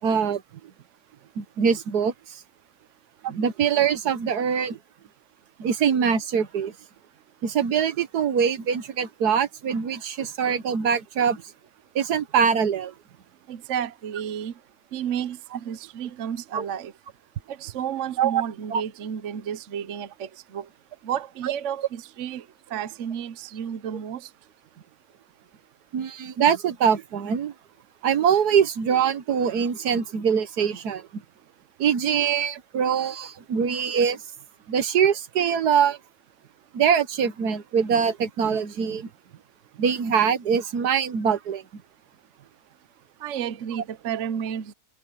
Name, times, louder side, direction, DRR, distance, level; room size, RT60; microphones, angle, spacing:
voice 1, 0.0-0.4 1.4-2.4 3.2-4.8 5.6-6.7 7.4-11.4 11.9-12.9 16.5-16.6 18.2-18.4 18.7-18.8 21.4-21.5 25.9-27.5 28.0-31.2 31.8-34.2 34.7-36.0 36.7-39.1 39.8-41.6, right 7 dB, 70° right, 1.6 m, -23 dB
voice 2, 13.5-14.5 14.9-16.9 17.5-20.7 21.0-22.4 22.7-24.3 43.2-44.7, right 9 dB, 55° right, 1.1 m, -32 dB
omnidirectional pair, 1.7 m